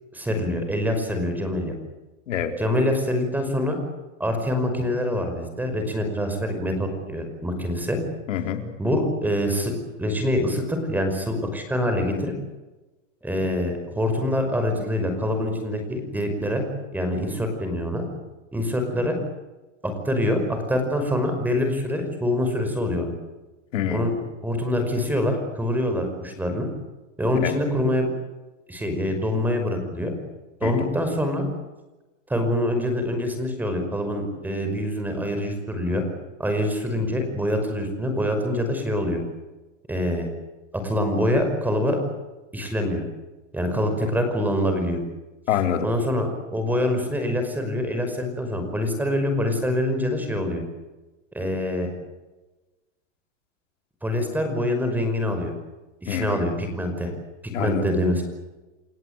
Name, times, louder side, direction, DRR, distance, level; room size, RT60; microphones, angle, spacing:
voice 1, 0.1-1.7 2.6-3.8 4.2-8.0 8.8-9.7 10.0-12.3 13.2-16.6 16.9-18.0 18.5-19.2 19.8-23.1 23.9-24.2 24.4-26.7 27.2-28.1 28.7-30.1 30.6-31.5 32.3-36.0 36.4-39.2 39.9-40.3 40.7-42.0 42.5-43.0 43.5-45.0 45.8-50.6 51.3-51.9 54.0-55.5 56.0-57.1 57.4-58.2, left 1 dB, 5° right, 6 dB, 5.5 m, -25 dB
voice 2, 8.3-8.6 23.7-24.1 27.4-27.6 30.6-30.7 45.5-45.9 56.1-56.4 57.5-57.8, left 9 dB, 80° left, 6 dB, 4.2 m, -26 dB
29.5 x 17.5 x 9.0 m, 1.1 s
supercardioid pair, 155°, 37 cm